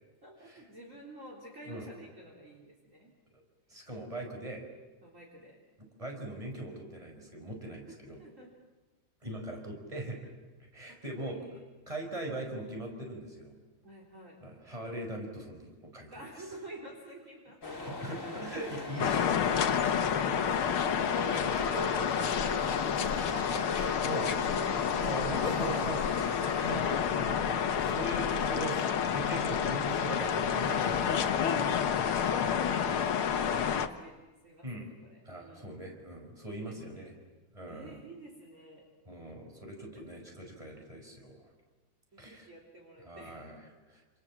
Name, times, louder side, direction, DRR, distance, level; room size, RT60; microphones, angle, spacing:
voice 1, 0.2-3.1 5.0-5.6 7.9-8.5 9.5-9.6 10.9-11.7 13.8-14.4 16.1-17.8 22.8-25.5 31.9-35.8 36.5-37.1 37.7-38.8 39.9-40.0 42.1-43.6, right 1 dB, 35° right, -1 dB, 4.0 m, -50 dB
voice 2, 3.7-4.6 6.0-8.2 9.2-10.3 10.7-11.4 11.9-13.5 14.4-16.2 17.8-20.2 21.2-22.5 23.7-24.3 25.0-28.8 29.1-31.4 34.6-34.9 35.2-37.1 37.5-38.0 39.1-41.5 42.2-42.5 43.0-43.6 43.9-44.0, right 1 dB, 15° right, 2 dB, 5.0 m, -41 dB
sound 1, 17.6-26.8, left 2 dB, 35° left, 3.2 m, -39 dB
sound 2, 19.0-33.9, left 8 dB, 80° left, 2.0 m, -29 dB
29.0 x 28.0 x 7.4 m, 1.2 s
omnidirectional pair, 2.3 m